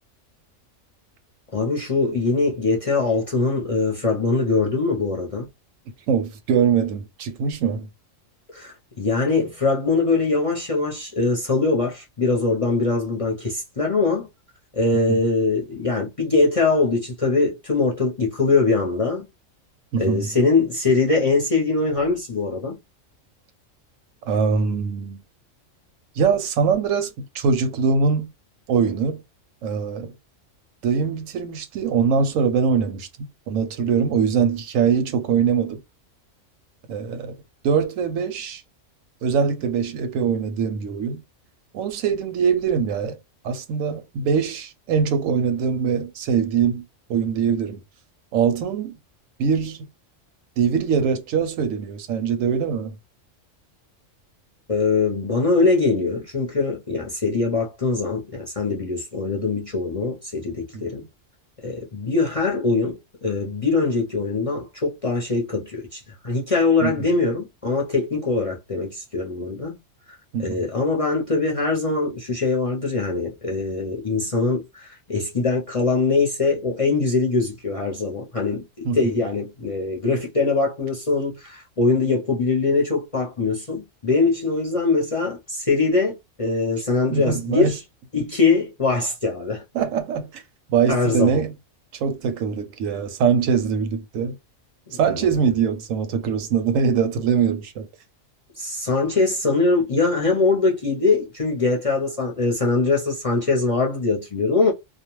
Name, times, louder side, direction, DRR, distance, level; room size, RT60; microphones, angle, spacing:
voice 1, 1.5-5.5 8.5-14.3 14.8-19.3 20.0-22.8 54.7-61.0 61.6-69.8 70.4-87.8 88.1-89.6 90.9-91.4 94.9-95.3 98.6-104.7, left 3 dB, 40° left, 0.5 m, -22 dB
voice 2, 6.1-7.9 15.1-15.2 19.9-20.3 24.3-25.2 26.2-28.3 28.7-29.2 29.6-30.1 30.8-35.8 36.9-37.4 37.6-38.6 39.2-41.2 41.7-43.2 43.4-46.8 47.1-47.8 48.3-49.0 49.4-49.9 50.6-52.9 60.7-60.8 66.8-67.1 70.3-70.6 78.8-79.1 87.1-87.7 89.7-90.4 90.7-91.5 91.9-94.3 94.9-97.9, right 6 dB, 90° right, 1.0 m, -22 dB
2.4 x 2.2 x 3.0 m
omnidirectional pair, 1.3 m